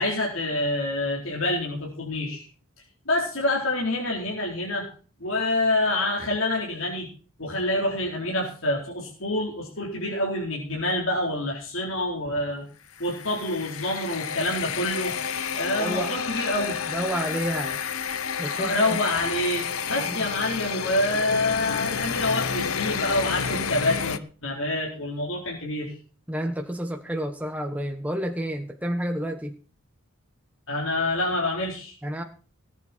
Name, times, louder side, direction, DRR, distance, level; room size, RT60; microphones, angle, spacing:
voice 1, 0.0-2.4 3.1-4.9 5.2-7.1 7.4-12.7 13.0-15.1 15.5-16.7 18.6-26.0 30.7-32.0, left 1 dB, 65° left, -3 dB, 4.2 m, -27 dB
sound 1, 12.9-24.2, left 6 dB, 80° left, 1.0 m, -30 dB
voice 2, 15.8-16.1 16.9-17.8 18.4-19.0 20.1-20.2 26.3-29.6 32.0-32.2, equal, 5° right, 4 dB, 1.4 m, -30 dB
18.5 x 9.2 x 4.5 m, 0.40 s
head